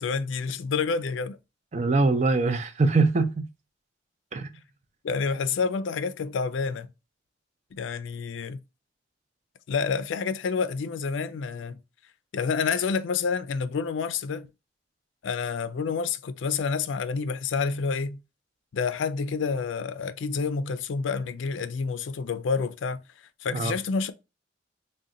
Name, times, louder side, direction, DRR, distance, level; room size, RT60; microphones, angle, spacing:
voice 1, 0.0-1.4 5.0-6.9 7.7-8.6 9.7-11.8 12.3-14.5 15.2-18.2 18.7-23.0 23.4-24.1, left 5 dB, 90° left, 0.4 m, -28 dB
voice 2, 1.7-3.4 4.3-4.5 23.5-23.7, right 3 dB, 40° right, 0.5 m, -23 dB
3.8 x 2.2 x 3.7 m
head